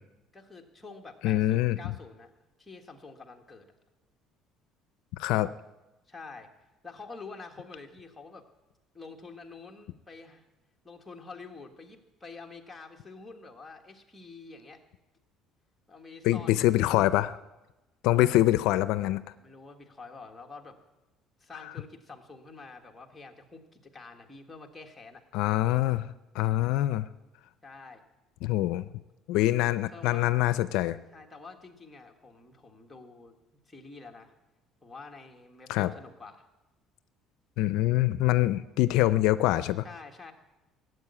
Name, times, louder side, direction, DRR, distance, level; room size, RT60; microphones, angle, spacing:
voice 1, 0.3-2.3 2.6-3.7 6.1-6.5 6.8-8.4 8.9-10.5 10.8-14.8 15.9-16.8 18.1-18.3 19.0-19.1 19.4-20.8 21.4-25.2 27.6-28.0 29.4-30.3 31.1-33.4 33.7-34.3 34.8-36.5 39.8-40.3, left 4 dB, 10° left, 2 dB, 1.6 m, -47 dB
voice 2, 1.2-1.8 5.2-5.5 16.2-17.4 18.0-19.2 25.3-26.1 26.3-27.1 28.4-28.9 29.3-31.0 35.7-35.9 37.6-39.8, left 16 dB, 75° left, 15 dB, 0.5 m, -24 dB
17.0 x 7.9 x 9.7 m, 1.0 s
cardioid pair, 155°, 0 cm